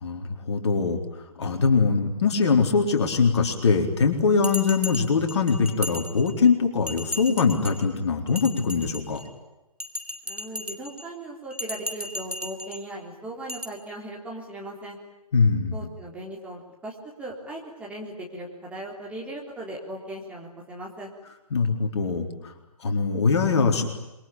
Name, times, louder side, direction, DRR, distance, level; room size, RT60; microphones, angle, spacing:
voice 1, 0.0-9.2 15.3-15.8 21.5-22.5 22.8-23.9, left 5 dB, 45° left, 4 dB, 4.1 m, -22 dB
Bell, 4.4-6.5 6.9-7.8 8.3-9.3 9.8-11.0 11.5-12.8 13.5-13.7, left 1 dB, 85° right, 3.7 m, -35 dB
voice 2, 10.3-15.0 15.7-21.1, right 1 dB, 5° right, -3 dB, 3.8 m, -38 dB
27.5 x 23.0 x 8.9 m, 1.0 s
figure-of-eight pair, 135°, 19 cm